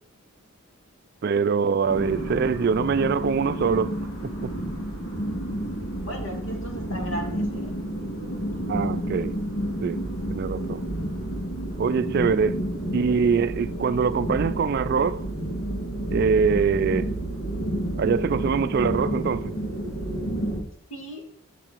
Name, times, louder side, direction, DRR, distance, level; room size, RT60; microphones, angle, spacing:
voice 1, 1.2-4.0 4.2-4.5 8.7-9.4 9.8-10.0 10.3-10.8 11.8-12.6 12.9-15.2 16.1-17.1 18.0-19.5, right 5 dB, 50° right, 0.3 m, -23 dB
sound 1, 1.9-20.6, right 1 dB, 75° left, 2.7 m, -30 dB
voice 2, 6.0-7.7 20.9-21.3, right 1 dB, 60° left, 1.9 m, -36 dB
8.8 x 6.7 x 4.5 m
head